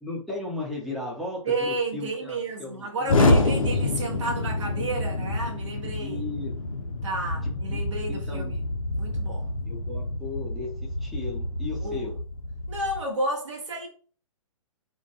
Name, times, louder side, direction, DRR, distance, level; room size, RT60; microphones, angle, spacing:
voice 1, 0.0-3.5 6.0-6.5 7.7-7.8 8.1-8.5 9.7-12.2, left 2 dB, ahead, 0.6 m, -35 dB
voice 2, 1.4-6.3 7.0-8.7 8.9-9.5 11.8-12.1 12.7-13.9, right 2 dB, 55° right, 0.7 m, -31 dB
Explosion, 3.1-13.0, left 2 dB, 75° left, 0.5 m, -27 dB
2.2 x 2.2 x 2.8 m
figure-of-eight pair, 125°, 18 cm